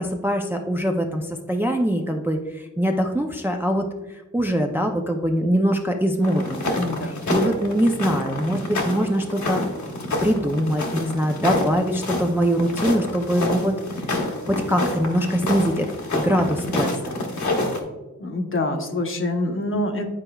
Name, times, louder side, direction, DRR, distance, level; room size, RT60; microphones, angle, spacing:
voice 1, 0.0-6.8 7.3-9.6 10.2-13.7 14.5-15.9 16.1-17.1, equal, 5° right, 3 dB, 0.4 m, -23 dB
sound 1, 6.2-17.8, left 2 dB, 65° left, 1.1 m, -27 dB
voice 2, 6.8-7.3 18.2-20.2, left 2 dB, 45° left, 4 dB, 0.8 m, -26 dB
9.6 x 4.4 x 2.3 m, 1.1 s
wide cardioid pair, 110°, 31 cm